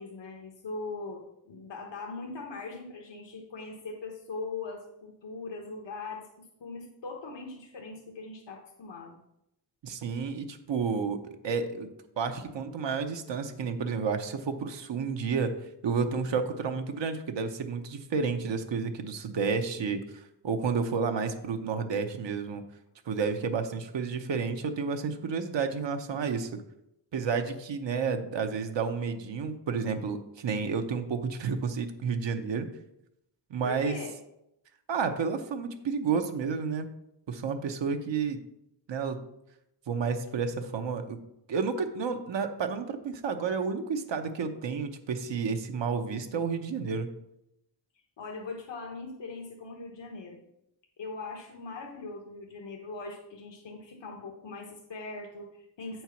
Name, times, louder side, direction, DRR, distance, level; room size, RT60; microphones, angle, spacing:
voice 1, 0.0-6.3 6.6-9.2 33.6-34.1 48.2-50.4 51.0-56.0, left 3 dB, 90° left, 0 dB, 1.2 m, -40 dB
voice 2, 9.8-11.2 11.4-11.9 12.2-15.5 15.8-20.0 20.4-22.6 23.1-26.5 27.1-32.7 33.5-34.0 34.9-36.9 37.3-38.4 38.9-39.2 39.9-41.2 41.5-47.1, right 5 dB, 90° right, 6 dB, 0.9 m, -31 dB
8.2 x 4.5 x 5.7 m, 0.82 s
wide cardioid pair, 140°, 42 cm